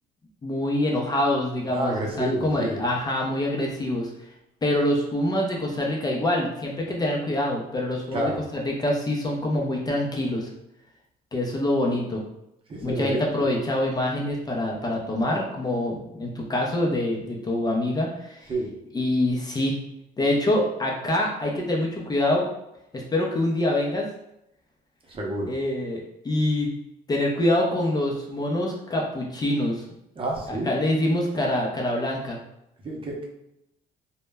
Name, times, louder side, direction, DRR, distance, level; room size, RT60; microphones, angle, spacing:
voice 1, 0.4-4.1 4.6-10.5 11.3-12.2 12.8-18.5 18.9-19.8 20.2-22.5 22.9-24.1 25.5-26.7 27.1-29.8 30.7-32.4, left 1 dB, 25° left, -1 dB, 0.5 m, -25 dB
voice 2, 1.7-2.8 8.1-8.4 12.7-13.3 18.5-18.7 25.1-25.5 30.2-30.7 32.8-33.2, right 2 dB, 30° right, -1 dB, 0.6 m, -29 dB
2.1 x 2.0 x 3.3 m, 0.84 s
cardioid pair, 110°, 17 cm